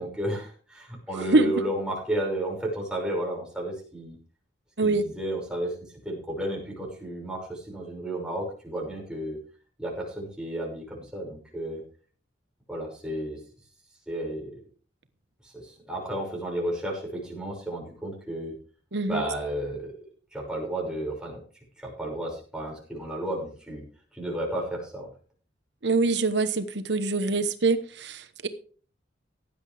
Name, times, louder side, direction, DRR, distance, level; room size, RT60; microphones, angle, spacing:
voice 1, 0.0-4.1 4.8-9.4 9.8-11.8 12.7-13.4 14.1-14.5 15.4-18.5 19.1-19.9 20.3-21.4 21.8-23.8 24.1-25.1, right 1 dB, 5° right, -2 dB, 5.9 m, -32 dB
voice 2, 18.9-19.2 25.8-28.5, right 3 dB, 70° right, 10 dB, 1.1 m, -24 dB
16.0 x 10.5 x 3.4 m, 0.41 s
head